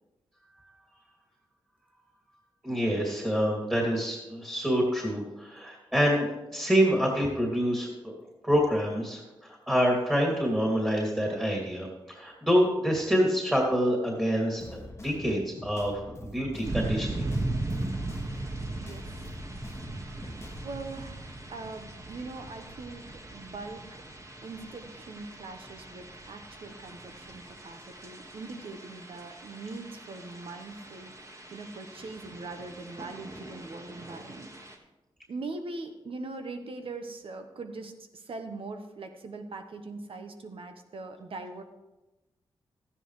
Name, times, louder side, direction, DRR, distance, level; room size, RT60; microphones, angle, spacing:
voice 1, 2.6-8.1 8.4-17.3, equal, 10° right, -1 dB, 2.7 m, -27 dB
sound 1, 14.6-20.8, left 1 dB, 25° left, 1.2 m, -45 dB
sound 2, 16.6-34.8, right 2 dB, 30° right, 1.5 m, -39 dB
voice 2, 20.6-23.0 23.3-23.8 24.4-31.1 31.5-34.5 35.3-41.6, right 3 dB, 65° right, 6 dB, 1.2 m, -41 dB
13.5 x 9.9 x 3.3 m, 1.0 s
cardioid pair, 60°, 10 cm